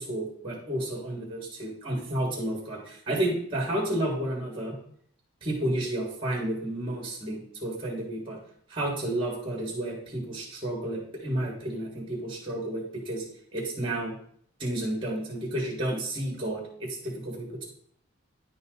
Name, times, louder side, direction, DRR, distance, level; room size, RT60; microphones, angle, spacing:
voice 1, 0.0-4.8 5.4-8.4 8.7-13.2 13.5-14.2 14.6-17.6, right 1 dB, 25° right, -4 dB, 1.7 m, -31 dB
9.9 x 3.9 x 3.9 m, 0.63 s
head